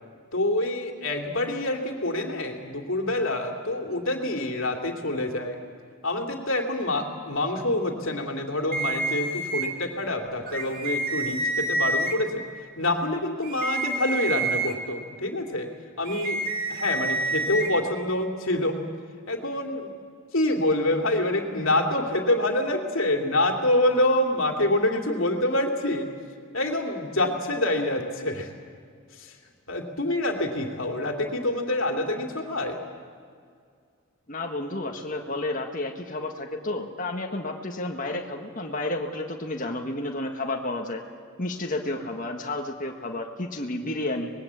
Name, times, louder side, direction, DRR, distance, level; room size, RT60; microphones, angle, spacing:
voice 1, 0.3-5.6 6.0-12.4 12.8-15.7 16.0-16.4 16.7-18.8 19.3-19.9 20.3-26.1 26.5-28.5 29.2-29.3 29.7-32.8, left 1 dB, 65° left, 3 dB, 2.6 m, -26 dB
sound 1, 8.7-9.7 10.5-12.1 13.4-14.7 16.1-17.7, right 2 dB, 40° right, 2.1 m, -28 dB
voice 2, 34.3-41.0 41.4-44.3, left 2 dB, 35° left, 2 dB, 1.7 m, -31 dB
24.5 x 20.5 x 8.3 m, 2.1 s
head